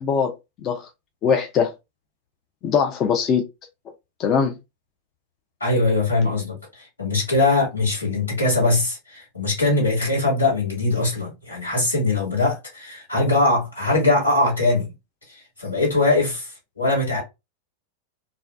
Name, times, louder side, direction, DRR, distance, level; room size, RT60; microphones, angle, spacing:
voice 1, 0.0-0.9 1.2-1.7 2.6-3.4 4.2-4.6, left 6 dB, 35° left, 0.4 m, -21 dB
voice 2, 5.6-14.9 15.3-17.2, left 2 dB, 80° left, 1.5 m, -21 dB
2.5 x 2.1 x 2.2 m
figure-of-eight pair, 90°, 0 cm